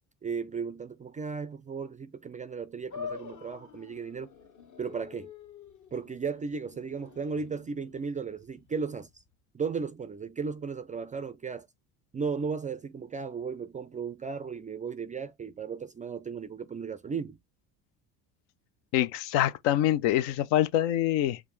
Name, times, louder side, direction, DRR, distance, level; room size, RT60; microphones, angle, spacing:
voice 1, 0.2-4.3 4.8-5.3 5.9-9.1 9.5-11.7 12.1-17.4, right 5 dB, 20° right, 0.3 m, -35 dB
sound 1, 2.9-9.4, left 7 dB, 40° left, 0.9 m, -46 dB
voice 2, 18.9-21.4, left 12 dB, 70° left, 0.6 m, -25 dB
5.0 x 2.5 x 3.1 m
hypercardioid pair, 75°, 45 cm